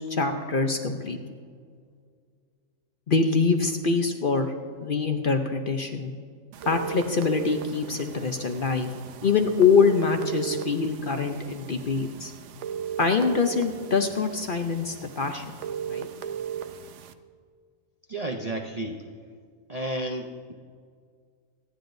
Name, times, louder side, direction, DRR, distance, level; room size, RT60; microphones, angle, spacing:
voice 1, 0.1-1.2 3.1-4.5 4.8-6.1 6.7-8.9 9.2-12.3 13.0-15.4 15.9-16.1, left 5 dB, 50° left, 5 dB, 0.8 m, -24 dB
sound 1, 6.5-17.1, right 8 dB, 65° right, 0.9 m, -37 dB
voice 2, 18.1-19.0 19.7-20.5, right 1 dB, 40° right, 2 dB, 0.6 m, -32 dB
25.5 x 9.9 x 2.6 m, 2.1 s
omnidirectional pair, 1.4 m